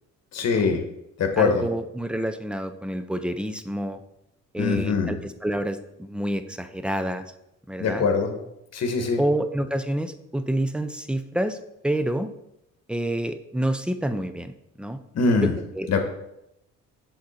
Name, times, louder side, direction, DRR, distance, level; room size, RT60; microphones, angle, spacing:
voice 1, 0.3-0.8 1.2-1.7 4.6-5.2 7.8-8.3 8.7-9.2 15.1-15.5 15.9-16.1, left 4 dB, 55° left, 5 dB, 1.2 m, -22 dB
voice 2, 1.4-4.0 4.5-7.3 7.7-8.0 9.2-11.6 11.8-12.3 12.9-15.0 15.8-15.9, right 1 dB, 5° right, 10 dB, 0.4 m, -28 dB
7.2 x 3.8 x 4.1 m, 0.84 s
cardioid pair, 100°, 31 cm